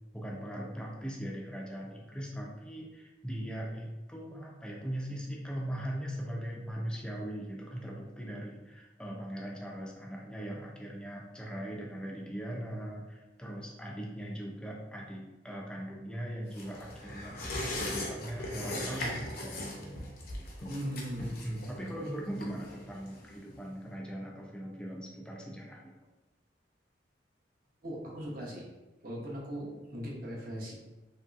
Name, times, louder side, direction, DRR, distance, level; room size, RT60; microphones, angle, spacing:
voice 1, 0.1-20.1 20.4-20.9 21.4-25.9, equal, 5° left, -2 dB, 0.4 m, -40 dB
sound 1, 16.5-23.6 23.9-24.0, left 1 dB, 55° left, 0.6 m, -39 dB
voice 2, 20.7-21.3 27.8-28.7 29.0-30.7, equal, 50° right, -3 dB, 0.7 m, -38 dB
2.9 x 2.7 x 2.3 m, 1.1 s
head